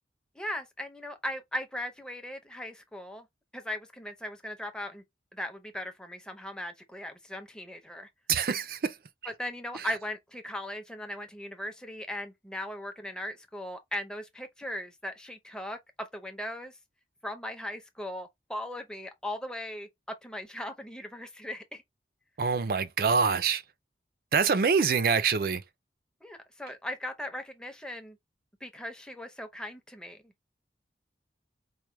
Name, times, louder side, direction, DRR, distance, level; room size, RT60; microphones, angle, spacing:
voice 1, 0.4-3.3 3.5-5.0 5.3-8.1 9.4-16.8 17.2-19.9 20.2-21.8 26.2-28.2 28.6-30.3, left 1 dB, 5° left, 0.6 m, -38 dB
voice 2, 8.3-8.9 22.4-23.6 24.3-25.6, right 5 dB, 55° right, 0.4 m, -25 dB
4.6 x 2.2 x 3.1 m
head